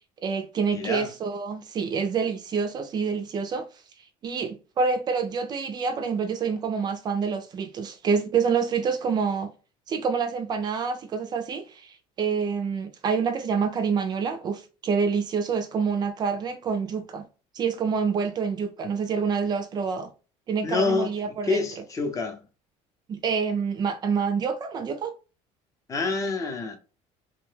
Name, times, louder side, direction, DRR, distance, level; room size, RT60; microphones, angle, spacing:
voice 1, 0.2-3.7 4.2-9.5 9.9-17.2 17.5-20.1 20.5-21.6 23.1-25.1, right 5 dB, 30° right, 0.4 m, -27 dB
voice 2, 0.7-1.1 20.6-21.1 21.4-22.4 25.9-26.8, left 3 dB, 25° left, 0.6 m, -27 dB
2.7 x 2.2 x 3.2 m
cardioid pair, 145°, 13 cm